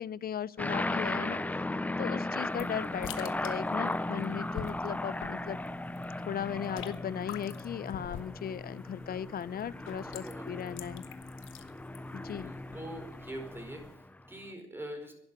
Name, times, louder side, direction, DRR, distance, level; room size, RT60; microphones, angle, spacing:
voice 1, 0.0-1.4 2.0-5.6 6.3-11.1 12.1-12.6, left 9 dB, 50° left, 19 dB, 0.6 m, -37 dB
sound 1, 0.6-14.3, left 2 dB, 10° left, 0.5 m, -36 dB
voice 2, 0.8-1.6 10.1-10.7 12.4-15.1, right 1 dB, 10° right, 3 dB, 4.8 m, -45 dB
sound 2, 2.4-14.0, left 9 dB, 85° left, 1.2 m, -48 dB
11.5 x 11.5 x 8.4 m, 0.80 s
cardioid pair, 90°, 20 cm